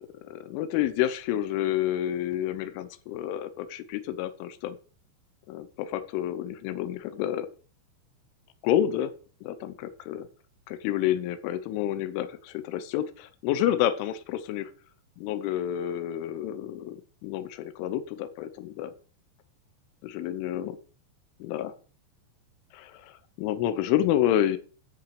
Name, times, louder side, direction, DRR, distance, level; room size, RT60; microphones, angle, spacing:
voice 1, 0.2-4.8 5.5-7.5 8.6-9.1 9.4-10.3 10.7-14.7 15.2-18.9 20.0-20.8 21.4-21.7 22.7-23.1 23.4-24.6, left 11 dB, 85° left, 11 dB, 3.3 m, -29 dB
10.5 x 7.3 x 5.0 m, 0.38 s
omnidirectional pair, 5.4 m